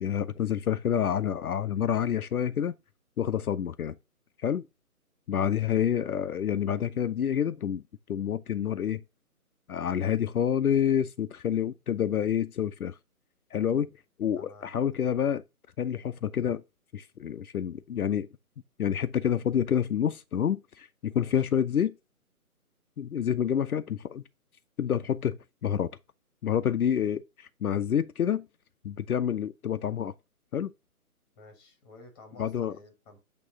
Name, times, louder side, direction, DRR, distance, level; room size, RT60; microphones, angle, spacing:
voice 1, 0.0-2.8 3.2-3.9 4.4-4.6 5.3-7.8 8.1-9.0 9.7-12.9 13.5-13.9 14.2-15.4 15.8-16.6 16.9-18.3 18.8-21.9 23.0-24.2 24.8-25.9 26.4-28.5 28.8-30.1 30.5-30.7 32.4-32.8, left 9 dB, 75° left, 0.6 m, -28 dB
voice 2, 14.4-14.7 21.1-21.4 31.4-33.2, left 2 dB, 15° left, 1.3 m, -52 dB
8.5 x 3.0 x 3.6 m
figure-of-eight pair, 160°, 45 cm